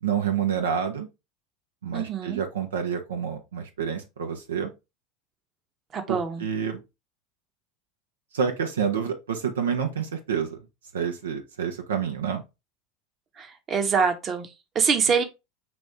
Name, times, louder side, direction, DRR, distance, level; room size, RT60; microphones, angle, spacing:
voice 1, 0.0-1.1 1.8-4.7 6.1-6.8 8.3-10.6 10.9-12.4, right 7 dB, 85° right, 0.7 m, -28 dB
voice 2, 1.9-2.4 5.9-6.4 13.4-15.2, right 6 dB, 35° right, 0.9 m, -25 dB
6.1 x 2.6 x 3.3 m
hypercardioid pair, 85°, 0 cm